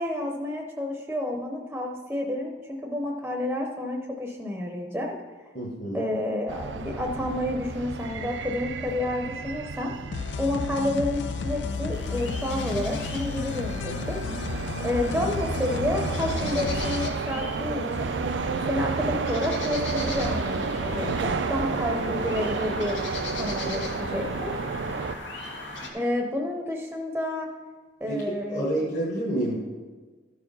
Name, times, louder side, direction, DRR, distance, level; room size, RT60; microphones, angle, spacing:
voice 1, 0.0-5.1 5.9-9.9 10.4-14.2 14.8-18.1 18.6-23.0 23.4-24.5 25.9-27.5 28.0-28.6, left 1 dB, 5° right, 1 dB, 0.7 m, -30 dB
voice 2, 5.5-6.1 28.1-29.7, right 1 dB, 45° left, -5 dB, 1.3 m, -29 dB
sound 1, 6.5-25.1, right 4 dB, 75° right, 0.5 m, -31 dB
sound 2, 10.1-17.1, left 5 dB, 70° left, 0.4 m, -33 dB
sound 3, 11.9-25.9, left 2 dB, 90° left, 1.6 m, -39 dB
13.0 x 4.7 x 5.4 m, 1.4 s
head